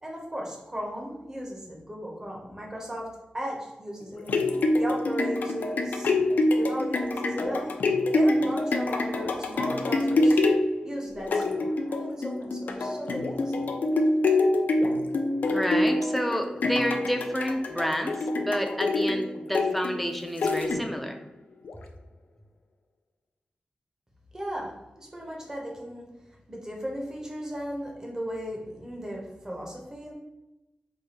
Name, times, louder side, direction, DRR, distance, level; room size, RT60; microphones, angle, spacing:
voice 1, 0.0-4.3 4.8-6.1 6.5-7.7 8.1-10.4 10.8-13.7 24.3-26.1 26.5-30.1, equal, 20° right, -1 dB, 0.8 m, -36 dB
sound 1, 4.0-21.1 21.7-21.8, left 2 dB, 85° left, 0.4 m, -26 dB
voice 2, 15.5-21.2, equal, ahead, 4 dB, 0.4 m, -29 dB
4.6 x 2.2 x 2.9 m, 0.97 s
wide cardioid pair, 120°, 3 cm